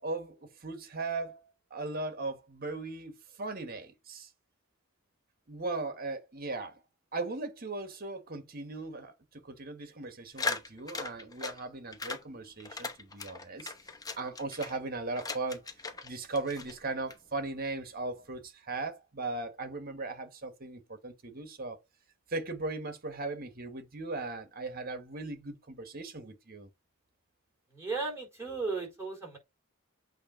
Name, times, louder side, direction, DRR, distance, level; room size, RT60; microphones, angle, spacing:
voice 1, 0.0-4.3 5.5-6.8 7.1-13.7 14.2-15.7 16.0-21.8 22.3-26.7, right 3 dB, 50° right, 1.5 m, -38 dB
sound 1, 10.4-11.6 11.9-12.2 12.6-14.8 15.1-16.1 16.3-17.2, left 3 dB, 20° left, 0.8 m, -38 dB
voice 2, 27.7-29.4, right 3 dB, 15° right, 4.4 m, -35 dB
8.4 x 3.0 x 5.0 m
head